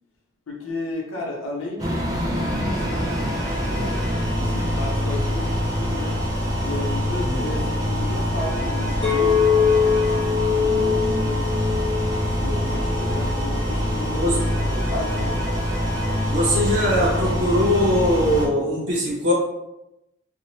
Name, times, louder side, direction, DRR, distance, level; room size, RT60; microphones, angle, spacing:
voice 1, 0.5-3.0 3.7-6.2 6.6-11.5 12.4-15.4, left 2 dB, 85° left, -1 dB, 0.7 m, -33 dB
sound 1, 1.8-18.5, equal, 15° right, 0.3 m, -24 dB
sound 2, 2.4-4.2 8.4-10.2 14.4-16.2, left 2 dB, 5° left, 0.7 m, -38 dB
Chink clink, 9.0-13.3 13.8-14.2, left 6 dB, 25° left, 0.9 m, -23 dB
voice 2, 16.3-19.3, equal, 60° right, -4 dB, 0.6 m, -21 dB
2.9 x 2.1 x 2.8 m, 0.91 s
head